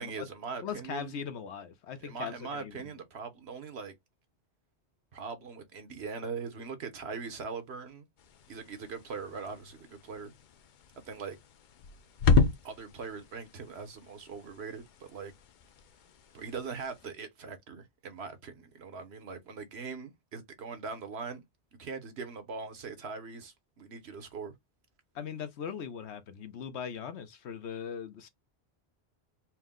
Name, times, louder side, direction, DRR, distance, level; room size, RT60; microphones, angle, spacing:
voice 1, 0.0-1.1 2.0-3.9 5.1-8.1 8.5-10.3 11.0-11.4 12.6-15.3 16.3-21.4 21.8-24.5, right 5 dB, 70° right, 1.2 m, -41 dB
voice 2, 0.6-2.3 2.6-2.8 25.1-28.3, left 7 dB, 80° left, 1.1 m, -39 dB
sound 1, 8.2-17.1, left 4 dB, 55° left, 0.6 m, -33 dB
4.4 x 2.1 x 3.6 m
omnidirectional pair, 1.1 m